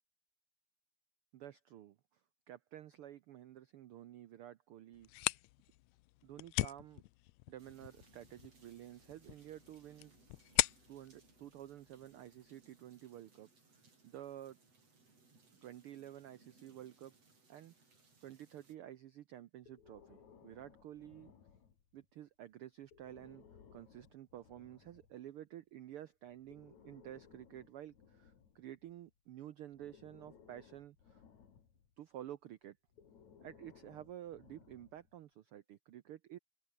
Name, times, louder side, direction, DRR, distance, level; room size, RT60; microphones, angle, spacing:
voice 1, 1.3-2.0 2.5-5.1 6.2-7.0 7.5-10.2 10.9-13.5 14.0-14.6 15.6-17.1 17.5-17.7 18.2-21.3 21.9-23.4 23.7-31.2 32.0-32.8 33.4-36.4, right 12 dB, 90° right, 1.2 m, -51 dB
sound 1, 4.9-12.5, left 19 dB, 85° left, 1.6 m, -40 dB
sound 2, 7.6-18.8, right 3 dB, 50° right, 7.2 m, -68 dB
Breathing, 19.6-22.1 22.8-25.2 26.3-29.1 29.7-31.9 32.9-35.2, left 7 dB, 65° left, 4.0 m, -62 dB
omnidirectional pair, 3.6 m